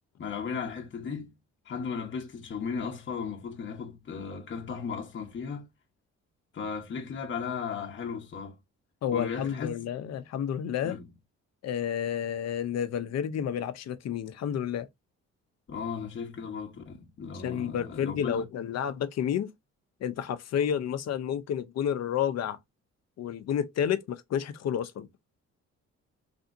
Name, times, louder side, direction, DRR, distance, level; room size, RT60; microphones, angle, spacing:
voice 1, 0.2-1.3 1.7-5.7 6.5-8.6 9.1-9.8 10.8-11.0 15.7-18.4, left 6 dB, 40° left, 0.9 m, -36 dB
voice 2, 9.0-11.0 11.6-14.9 17.4-19.5 20.0-22.6 23.2-25.1, left 9 dB, 60° left, 0.6 m, -30 dB
3.4 x 2.7 x 2.6 m
cardioid pair, 90°, 30 cm